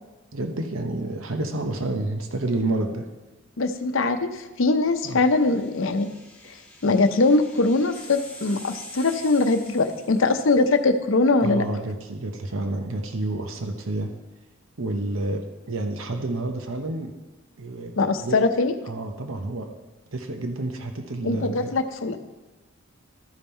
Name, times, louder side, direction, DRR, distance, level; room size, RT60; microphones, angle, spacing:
voice 1, 0.3-3.1 5.0-5.2 11.4-14.1 14.8-15.4 15.7-17.1 17.6-18.4 18.9-19.7 20.1-21.7, right 2 dB, 90° right, 5 dB, 0.9 m, -29 dB
voice 2, 3.6-6.1 6.8-11.7 18.0-18.7 21.2-22.2, left 3 dB, 75° left, 8 dB, 0.7 m, -22 dB
sound 1, 4.8-10.7, equal, 5° left, 1.4 m, -45 dB
13.0 x 5.4 x 4.4 m, 1.2 s
head